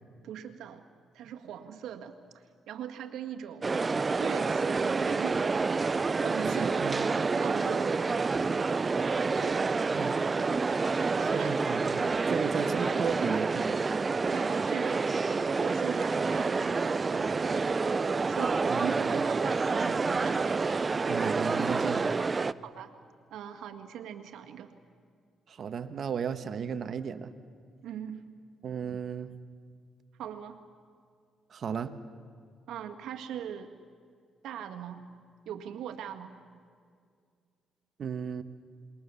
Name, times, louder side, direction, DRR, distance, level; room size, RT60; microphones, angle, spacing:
voice 1, 0.2-0.8 1.1-3.8 4.2-5.5 6.2-6.9 7.4-8.0 9.4-9.7 11.1-11.5 14.3-17.7 18.3-20.7 22.6-22.9 23.3-24.7 27.8-28.2 30.2-30.6 32.7-33.7 34.4-35.0 35.4-36.4, right 9 dB, 80° right, 6 dB, 1.8 m, -40 dB
sound 1, 3.6-22.5, right 4 dB, 30° right, 0.5 m, -28 dB
voice 2, 6.6-7.1 9.9-10.2 11.2-13.8 18.7-19.2 21.0-22.2 25.5-27.3 28.6-29.3 31.5-31.9 38.0-38.4, right 6 dB, 55° right, 10 dB, 1.3 m, -34 dB
27.5 x 21.5 x 7.1 m, 2.2 s
cardioid pair, 90°, 0 cm